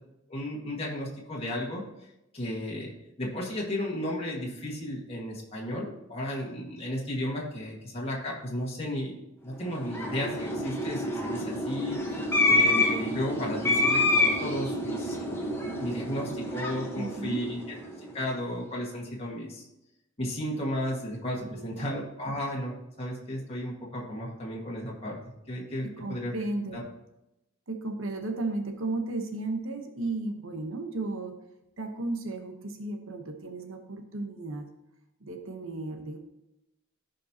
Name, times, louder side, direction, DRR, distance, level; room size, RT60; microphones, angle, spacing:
voice 1, 0.3-1.8 2.3-2.9 3.2-12.2 12.5-15.5 15.8-17.6 18.1-19.7 20.2-25.2 25.5-26.3 26.7-26.8, equal, 30° left, -4 dB, 1.7 m, -34 dB
sound 1, 9.6-18.1, left 2 dB, 10° left, 1.1 m, -28 dB
voice 2, 16.9-17.4 21.5-21.9 25.8-26.8 27.7-31.3 31.8-34.7 35.2-36.2, right 2 dB, 75° right, 4 dB, 1.0 m, -34 dB
15.0 x 5.2 x 2.9 m, 0.91 s
head